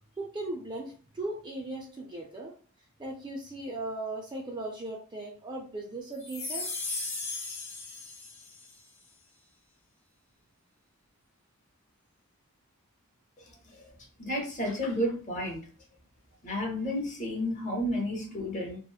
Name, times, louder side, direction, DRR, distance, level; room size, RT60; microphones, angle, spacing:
voice 1, 0.2-2.5 3.0-6.7, right 2 dB, 20° right, 0 dB, 0.3 m, -37 dB
sound 1, 6.2-8.7, left 3 dB, 65° left, 1.0 m, -36 dB
voice 2, 13.4-13.9 14.2-15.6 16.4-18.8, equal, 35° left, 0 dB, 0.7 m, -32 dB
2.9 x 2.0 x 2.2 m, 0.42 s
head